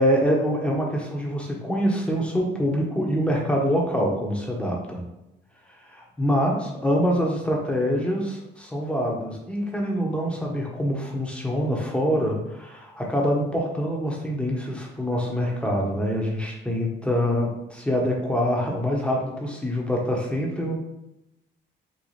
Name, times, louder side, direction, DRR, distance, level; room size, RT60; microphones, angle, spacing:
voice 1, 0.0-5.0 5.9-20.7, equal, 5° left, -2 dB, 1.2 m, -25 dB
4.9 x 2.5 x 4.2 m, 0.90 s
cardioid pair, 90°, 20 cm